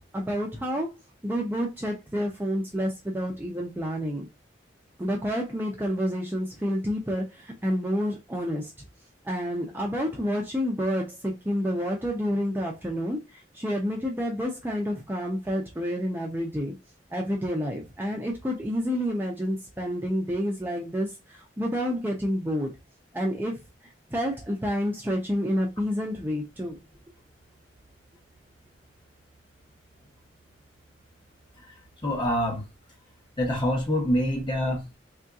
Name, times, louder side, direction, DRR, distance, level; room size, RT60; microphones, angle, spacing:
voice 1, 0.1-0.9 1.2-4.3 5.0-8.7 9.2-16.7 17.1-22.7 23.1-23.6 24.1-26.8, equal, 10° right, 0.5 m, -29 dB
voice 2, 32.0-32.6 33.4-35.0, equal, 25° left, 1.0 m, -26 dB
3.6 x 2.7 x 2.3 m
head